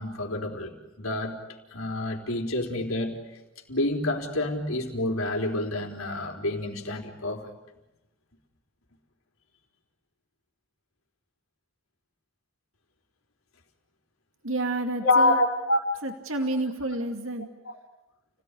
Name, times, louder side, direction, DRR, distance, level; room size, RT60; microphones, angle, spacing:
voice 1, 0.0-1.4 1.7-3.2 3.7-7.5 15.0-16.0 17.7-17.8, left 2 dB, 90° left, 3 dB, 4.0 m, -27 dB
voice 2, 14.4-15.4 16.0-17.5, right 2 dB, 75° right, 6 dB, 2.3 m, -29 dB
29.5 x 18.0 x 10.0 m, 0.97 s
head